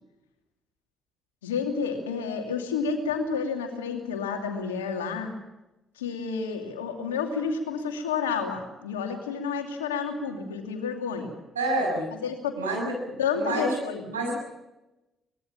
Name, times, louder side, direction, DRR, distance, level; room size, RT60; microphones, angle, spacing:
voice 1, 1.4-5.3 6.0-11.3 12.2-12.6 12.8-14.0, left 5 dB, 85° left, 4 dB, 2.7 m, -30 dB
voice 2, 11.5-12.1 12.6-13.8 14.1-14.3, right 2 dB, 90° right, -1 dB, 6.9 m, -28 dB
23.5 x 21.0 x 7.2 m, 0.98 s
figure-of-eight pair, 45°, 0 cm